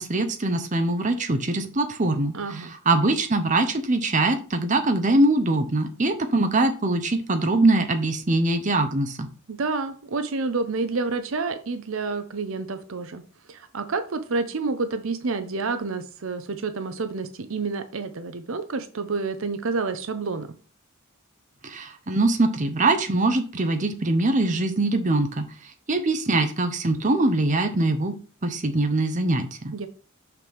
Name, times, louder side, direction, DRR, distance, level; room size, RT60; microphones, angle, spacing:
voice 1, 0.0-9.3 21.6-25.4 25.9-28.1 28.4-29.7, right 2 dB, 35° right, 7 dB, 0.8 m, -23 dB
voice 2, 2.3-2.7 9.5-13.2 13.5-20.5 29.7-29.9, right 4 dB, 70° right, 10 dB, 0.7 m, -29 dB
6.0 x 5.9 x 3.5 m, 0.37 s
head